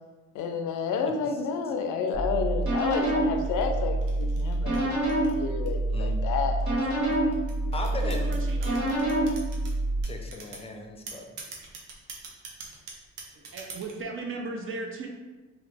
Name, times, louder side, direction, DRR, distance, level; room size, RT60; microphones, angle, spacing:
voice 1, 0.3-7.0, left 5 dB, 80° left, 5 dB, 0.5 m, -30 dB
sound 1, 2.1-10.0, right 1 dB, 70° right, 1.3 m, -27 dB
sound 2, 3.4-5.9 6.6-9.7 10.0-10.7 11.1-14.0, right 4 dB, 90° right, 0.7 m, -43 dB
voice 2, 5.9-6.2 7.7-8.3 10.0-11.3, left 2 dB, 20° left, 3 dB, 0.4 m, -37 dB
voice 3, 8.0-8.9 13.3-15.1, right 3 dB, 45° right, 2 dB, 0.5 m, -36 dB
2.8 x 2.4 x 3.3 m, 1.2 s
cardioid pair, 90°, 30 cm